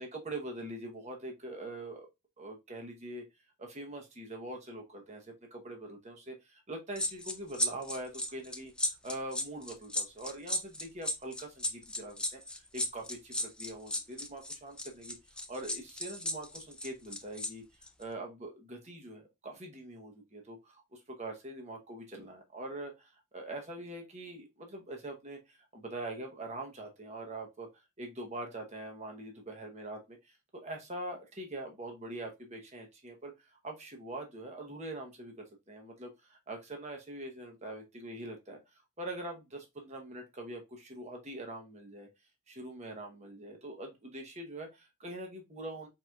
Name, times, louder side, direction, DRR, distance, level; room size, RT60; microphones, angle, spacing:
voice 1, 0.0-2.1 2.4-3.2 3.6-8.7 9.0-15.2 15.5-17.6 18.0-27.7 28.0-38.6 39.0-42.1 42.5-45.9, right 1 dB, 30° right, 3 dB, 0.9 m, -43 dB
sound 1, 7.0-17.5 17.8-18.0, left 1 dB, 5° left, 0.3 m, -35 dB
4.5 x 3.9 x 2.3 m, 0.22 s
head